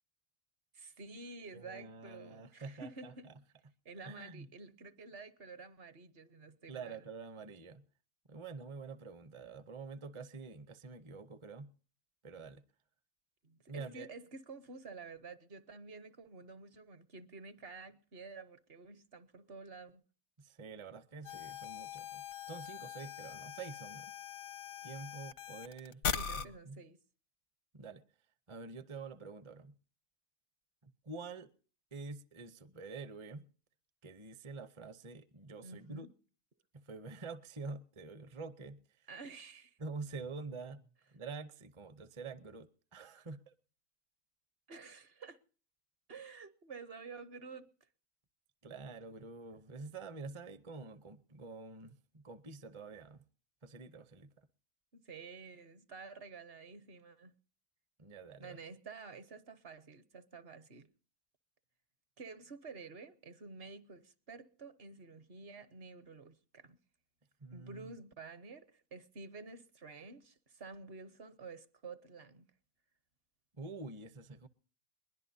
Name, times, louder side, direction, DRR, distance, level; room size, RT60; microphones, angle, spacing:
voice 1, 0.7-3.3 3.8-7.0 13.4-20.0 26.1-27.0 35.6-36.1 39.1-39.8 44.7-45.4 46.1-47.7 54.9-57.3 58.4-60.9 62.2-66.8 67.5-72.5, right 4 dB, 50° right, 1.0 m, -50 dB
voice 2, 1.5-3.3 4.0-4.5 6.7-7.8 8.3-11.7 12.2-12.6 13.7-14.1 20.4-24.1 24.8-26.0 26.4-26.8 27.7-28.0 28.5-29.7 30.8-31.5 31.9-33.5 34.0-36.1 36.7-39.1 39.8-43.5 48.6-53.2 53.6-54.5 58.0-58.6 67.4-68.0 73.6-74.5, right 4 dB, 30° right, 0.6 m, -47 dB
sound 1, 21.2-26.4, left 7 dB, 85° left, 1.3 m, -41 dB
21.5 x 20.5 x 2.7 m
omnidirectional pair, 1.4 m